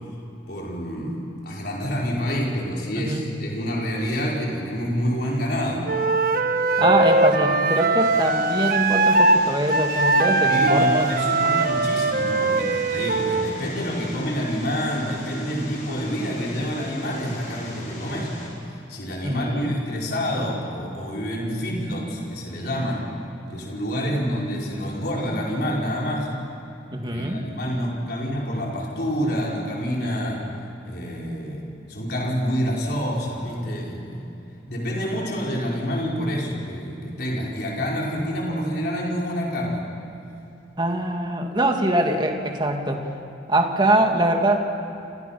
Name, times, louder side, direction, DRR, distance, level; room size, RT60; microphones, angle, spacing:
voice 1, 0.5-5.9 6.6-7.0 10.5-18.3 18.9-23.1 23.5-26.3 27.0-30.4 30.8-34.2 34.7-39.9, equal, 55° left, -3 dB, 5.1 m, -27 dB
voice 2, 3.0-3.3 6.8-11.1 19.2-19.7 26.9-27.5 40.8-43.1 43.5-44.6, right 1 dB, 25° right, 2 dB, 2.3 m, -23 dB
Wind instrument woodwind instrument, 5.9-9.4 9.7-13.5, right 2 dB, 50° right, 1.3 m, -21 dB
Vehicle, 8.0-18.5, left 1 dB, 40° left, 6.9 m, -41 dB
29.5 x 28.5 x 5.9 m, 2.6 s
head